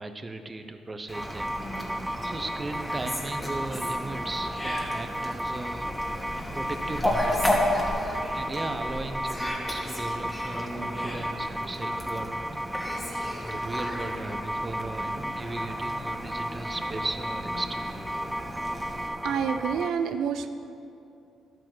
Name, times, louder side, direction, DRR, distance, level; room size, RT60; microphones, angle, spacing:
voice 1, 0.0-1.9 2.2-5.9 6.5-7.5 8.3-12.3 13.4-18.0, right 2 dB, 25° right, 7 dB, 0.9 m, -37 dB
Fowl, 1.1-19.1, left 1 dB, 10° left, 2.1 m, -34 dB
sound 1, 1.1-19.9, equal, 5° right, 0.4 m, -34 dB
voice 2, 19.2-20.5, right 7 dB, 80° right, 8 dB, 0.5 m, -28 dB
11.5 x 9.3 x 6.2 m, 2.7 s
cardioid pair, 90°, 0 cm